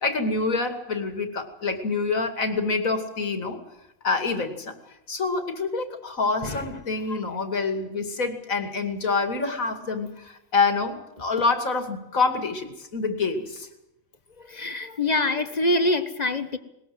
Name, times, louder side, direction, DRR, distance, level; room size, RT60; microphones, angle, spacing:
voice 1, 0.0-3.6 4.0-4.7 5.1-13.7, left 4 dB, 75° left, 7 dB, 2.9 m, -26 dB
voice 2, 14.4-16.6, left 2 dB, 30° left, 10 dB, 1.4 m, -25 dB
20.5 x 20.5 x 7.9 m, 0.86 s
omnidirectional pair, 1.5 m